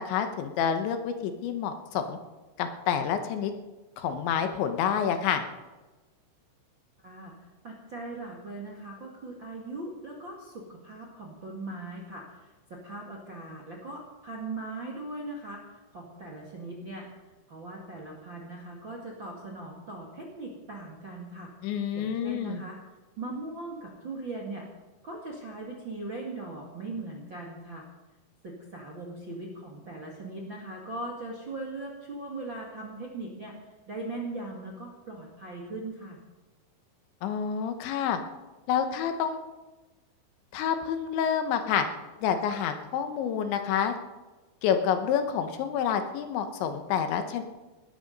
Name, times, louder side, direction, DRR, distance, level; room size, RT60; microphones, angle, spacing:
voice 1, 0.0-2.2 2.6-3.5 4.0-5.4 21.6-22.6 37.2-38.2 38.7-39.4 40.5-41.9 42.2-43.9 44.6-47.4, left 8 dB, 75° left, 7 dB, 3.3 m, -28 dB
voice 2, 7.0-7.3 7.6-15.6 15.9-17.1 17.5-21.5 21.9-22.8 23.2-24.7 25.0-27.8 28.4-33.5 33.9-36.2, right 2 dB, 45° right, -1 dB, 1.6 m, -39 dB
18.0 x 12.5 x 5.4 m, 1.2 s
omnidirectional pair, 5.5 m